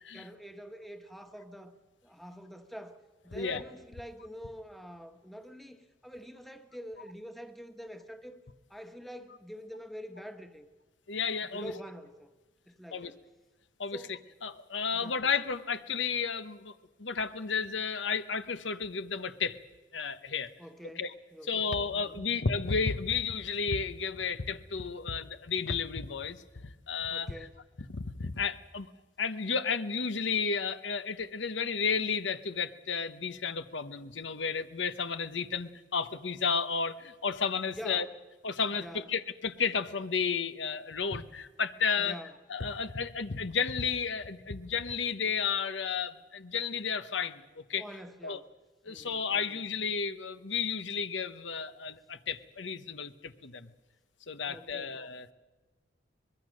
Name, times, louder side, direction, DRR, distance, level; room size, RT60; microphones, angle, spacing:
voice 1, 0.1-1.7 2.0-8.4 8.7-10.6 11.5-12.3 12.7-13.2 13.9-14.2 14.9-15.2 20.6-21.0 21.3-22.3 27.1-27.5 37.7-38.1 38.8-39.1 42.0-42.4 47.7-48.5 48.9-49.6 54.5-54.9, equal, ahead, 7 dB, 1.2 m, -46 dB
voice 2, 11.1-11.7 12.9-13.1 13.8-14.0 14.4-16.7 17.0-19.6 19.9-20.5 21.0-21.1 21.5-27.5 27.9-28.9 29.2-38.1 38.4-42.2 42.5-47.8 48.2-48.4 48.8-53.7 54.3-55.3, left 5 dB, 90° left, 11 dB, 1.1 m, -32 dB
24.0 x 21.5 x 6.5 m, 1.2 s
head